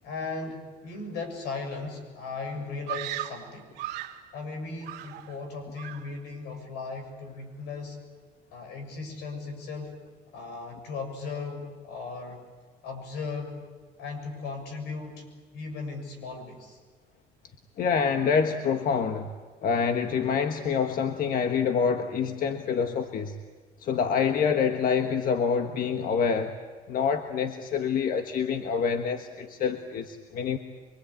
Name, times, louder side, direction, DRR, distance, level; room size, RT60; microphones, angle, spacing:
voice 1, 0.0-3.8 4.3-8.0 8.5-10.0 10.3-12.4 12.8-13.6 14.0-15.3 15.5-16.8, left 4 dB, 85° left, 5 dB, 7.2 m, -37 dB
Screaming, 2.9-4.3 4.8-5.5 5.7-6.2, right 14 dB, 85° right, 2.2 m, -37 dB
voice 2, 17.8-19.3 19.6-23.4 23.8-26.5 26.9-30.6, left 6 dB, 60° left, 6 dB, 1.5 m, -26 dB
25.0 x 24.5 x 8.6 m, 1.4 s
cardioid pair, 110°, 17 cm